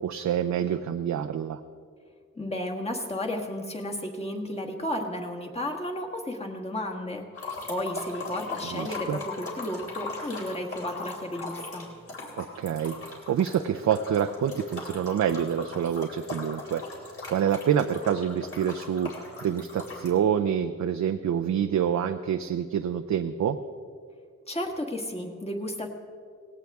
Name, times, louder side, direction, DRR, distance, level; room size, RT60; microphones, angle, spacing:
voice 1, 0.0-1.6 8.7-9.2 12.4-19.1 19.4-23.6, right 8 dB, 70° right, 7 dB, 0.6 m, -27 dB
voice 2, 2.4-11.9 24.5-25.9, left 1 dB, 20° left, 1 dB, 1.5 m, -33 dB
sound 1, 7.3-20.1, left 3 dB, 50° left, 3.5 m, -39 dB
18.5 x 17.0 x 3.6 m, 2.1 s
wide cardioid pair, 145°, 29 cm